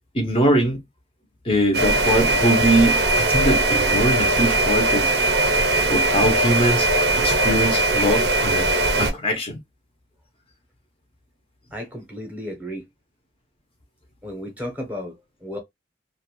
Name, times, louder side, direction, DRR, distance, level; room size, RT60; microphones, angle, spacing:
voice 1, 0.1-0.8 1.4-5.1 5.9-6.9 7.2-8.7 9.0-9.6, right 1 dB, 30° left, 0.5 m, -22 dB
sound 1, 1.7-9.1, right 2 dB, 55° right, 0.5 m, -20 dB
voice 2, 11.7-12.9 14.2-15.6, left 1 dB, 10° right, 0.7 m, -34 dB
2.5 x 2.1 x 2.8 m
head